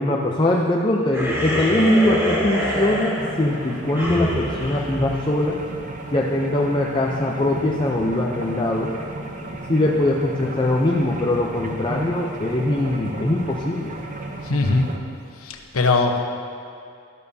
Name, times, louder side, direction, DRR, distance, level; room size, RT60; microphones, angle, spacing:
voice 1, 0.0-5.6 6.1-8.9 9.7-13.9, left 1 dB, 25° left, -2 dB, 0.6 m, -22 dB
sound 1, 1.1-5.8, equal, 10° right, 1.8 m, -26 dB
sound 2, 2.6-15.0, right 2 dB, 35° right, 0.8 m, -34 dB
voice 2, 14.4-15.0 15.4-16.2, left 3 dB, 80° left, 3 dB, 1.0 m, -21 dB
12.5 x 12.0 x 2.8 m, 2.5 s
head